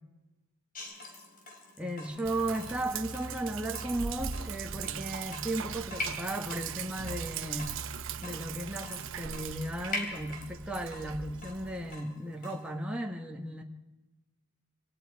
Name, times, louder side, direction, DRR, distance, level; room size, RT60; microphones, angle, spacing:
Water tap faucet / Drip, 0.7-12.7, left 2 dB, 40° left, 3.6 m, -44 dB
voice 1, 1.8-7.8 8.2-13.6, right 1 dB, 5° right, 0 dB, 1.5 m, -35 dB
Sink (filling or washing), 2.3-12.0, right 7 dB, 60° right, 0.9 m, -39 dB
27.5 x 27.0 x 4.7 m, 1.1 s
head